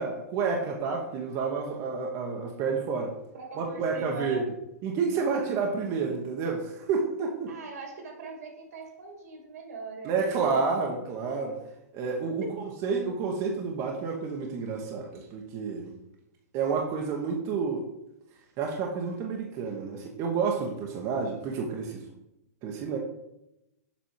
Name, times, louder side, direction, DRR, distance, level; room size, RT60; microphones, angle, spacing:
voice 1, 0.0-3.1 3.6-4.4 4.8-7.5 10.0-11.5 11.9-15.9 16.5-17.8 18.6-22.0 22.6-23.0, right 5 dB, 35° right, 0 dB, 1.0 m, -30 dB
voice 2, 3.3-4.5 7.5-10.7 12.4-12.5, right 3 dB, 75° right, 3 dB, 2.2 m, -41 dB
7.2 x 4.5 x 4.6 m, 0.86 s
hypercardioid pair, 135°, 9 cm